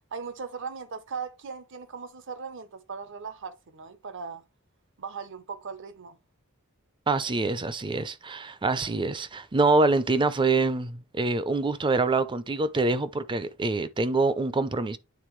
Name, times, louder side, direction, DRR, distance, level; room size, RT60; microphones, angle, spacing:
voice 1, 0.1-4.4 5.0-6.2, right 5 dB, 60° right, 0.8 m, -38 dB
voice 2, 7.1-15.0, right 3 dB, 20° right, 0.5 m, -25 dB
9.3 x 3.8 x 3.2 m
head